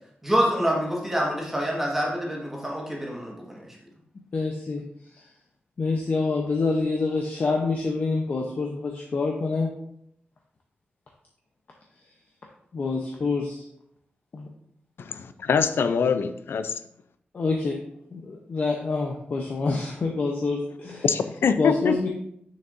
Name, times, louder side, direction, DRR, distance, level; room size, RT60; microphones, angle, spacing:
voice 1, 0.2-3.6, equal, 10° right, -3 dB, 1.5 m, -26 dB
voice 2, 4.3-4.8 5.1-5.2 5.8-9.7 12.7-13.6 14.3-14.5 17.3-17.8 18.1-21.1 21.6-22.1, left 3 dB, 50° left, 0 dB, 0.7 m, -26 dB
voice 3, 15.1-16.7 21.0-22.1, left 6 dB, 85° left, 11 dB, 0.4 m, -24 dB
6.9 x 6.3 x 2.6 m, 0.72 s
wide cardioid pair, 155°, 4 cm